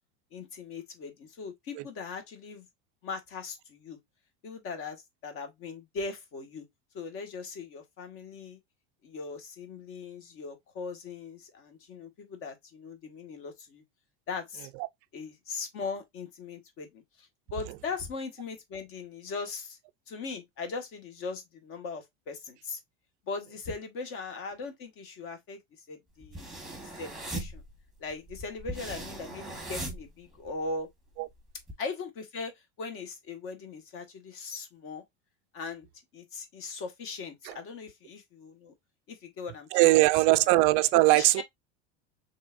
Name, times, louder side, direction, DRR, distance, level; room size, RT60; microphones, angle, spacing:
voice 1, 0.3-2.7 3.0-4.0 4.4-6.6 6.9-8.6 9.0-13.8 14.3-14.7 15.1-19.8 20.1-22.8 23.2-25.6 25.9-27.6 28.0-30.9 31.8-32.5 32.8-35.0 35.5-35.9 36.1-38.7 39.1-39.7 40.0-40.1 41.1-41.4, left 4 dB, 45° left, 1.6 m, -39 dB
sound 1, 26.2-30.7 31.1-31.7, right 1 dB, ahead, 1.2 m, -39 dB
voice 2, 39.7-41.4, right 20 dB, 50° right, 0.4 m, -21 dB
5.2 x 3.4 x 2.5 m
supercardioid pair, 155°, 31 cm